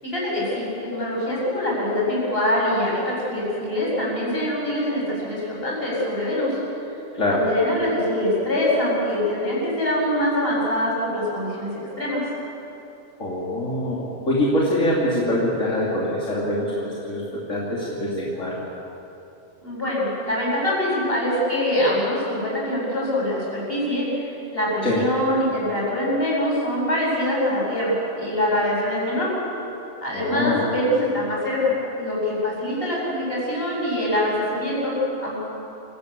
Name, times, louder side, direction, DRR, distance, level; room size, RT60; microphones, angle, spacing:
voice 1, 0.0-6.6 7.3-12.2 19.6-24.3 24.5-29.3 30.0-35.5, left 1 dB, 50° left, -5 dB, 8.2 m, -24 dB
voice 2, 13.2-18.6 24.8-25.0 30.1-30.6, left 1 dB, 85° left, -6 dB, 3.5 m, -24 dB
27.0 x 17.5 x 8.4 m, 2.9 s
omnidirectional pair, 1.3 m